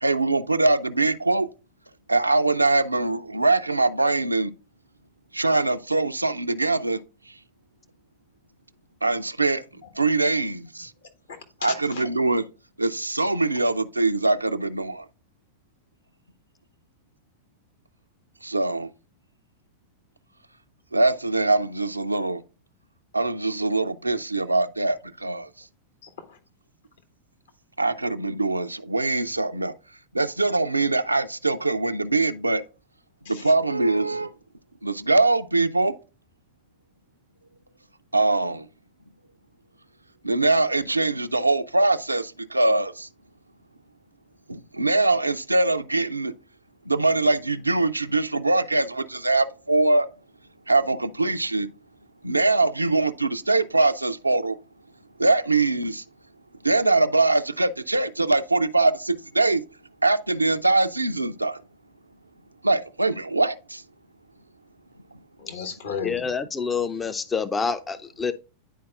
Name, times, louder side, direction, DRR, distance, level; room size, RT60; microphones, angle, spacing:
voice 1, 0.0-1.5 2.1-4.5 5.3-7.0 9.0-9.6 10.0-10.9 11.6-12.5 12.8-15.0 18.4-18.9 20.9-22.4 23.1-25.5 27.8-29.7 30.1-32.6 33.3-34.3 34.8-35.9 38.1-38.7 40.2-43.1 44.5-46.3 46.9-50.1 50.7-51.7 52.2-54.6 55.2-56.0 56.6-59.6 60.0-61.6 62.6-63.8, right 2 dB, 85° right, 0.4 m, -22 dB
voice 2, 11.6-12.1 26.0-26.4 33.2-33.5 65.4-66.3, left 6 dB, 65° left, 1.3 m, -35 dB
voice 3, 66.0-68.3, left 5 dB, 15° left, 0.4 m, -27 dB
10.0 x 4.5 x 2.4 m
figure-of-eight pair, 90°, 0 cm